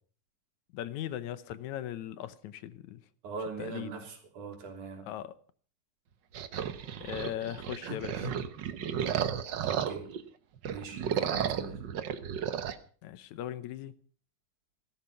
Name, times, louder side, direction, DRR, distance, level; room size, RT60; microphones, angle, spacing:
voice 1, 0.7-3.0 3.6-3.9 5.1-5.4 7.0-8.3 13.0-13.9, left 11 dB, 75° left, 2.2 m, -39 dB
voice 2, 3.2-5.1 7.9-8.4 9.6-10.1 10.7-11.8, right 4 dB, 90° right, 4.8 m, -41 dB
sound 1, 6.3-10.2 10.6-12.8, right 8 dB, 65° right, 1.1 m, -33 dB
17.0 x 13.5 x 5.7 m
omnidirectional pair, 3.4 m